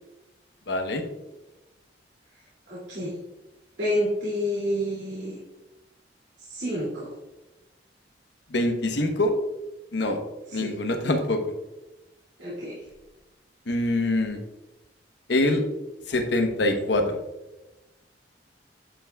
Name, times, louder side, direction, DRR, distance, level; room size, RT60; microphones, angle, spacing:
voice 1, 0.7-1.0 8.5-9.3 9.9-10.2 10.5-11.4 13.7-14.4 15.3-15.6 16.1-17.2, left 2 dB, 75° left, 5 dB, 1.0 m, -24 dB
voice 2, 2.7-3.2 3.8-5.4 6.4-7.1 10.5-10.7 12.4-12.8 16.1-16.2, equal, 75° right, -9 dB, 2.5 m, -29 dB
9.9 x 5.7 x 2.3 m, 1.0 s
head